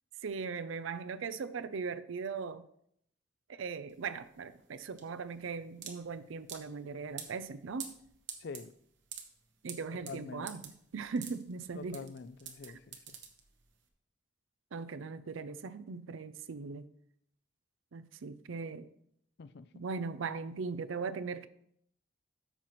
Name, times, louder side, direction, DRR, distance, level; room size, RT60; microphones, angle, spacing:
voice 1, 0.2-2.6 3.5-7.9 9.6-12.0 14.7-16.9 17.9-18.9 19.7-21.5, right 5 dB, 75° right, 0.5 m, -39 dB
sound 1, 3.9-13.8, right 8 dB, 60° right, 1.1 m, -48 dB
voice 2, 8.4-8.7 9.9-10.5 11.7-13.2 19.4-19.8, left 4 dB, 55° left, 0.4 m, -46 dB
13.0 x 5.8 x 3.1 m
head